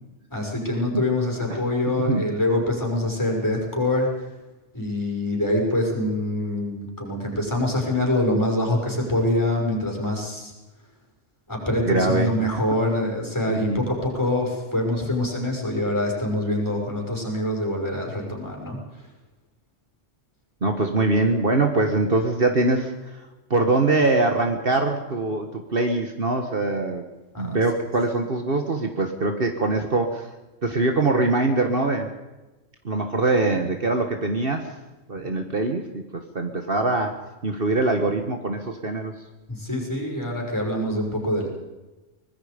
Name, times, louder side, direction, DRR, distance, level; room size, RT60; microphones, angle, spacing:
voice 1, 0.3-4.1 4.7-10.5 11.5-19.0 27.3-27.6 39.5-41.5, left 1 dB, 15° left, 0 dB, 6.2 m, -25 dB
voice 2, 11.8-12.4 13.5-13.8 20.6-23.2 23.5-27.0 27.4-30.3 30.6-32.1 32.8-34.7 35.1-39.1, right 2 dB, 50° right, 5 dB, 1.7 m, -23 dB
24.5 x 20.0 x 5.2 m, 1.1 s
omnidirectional pair, 1.2 m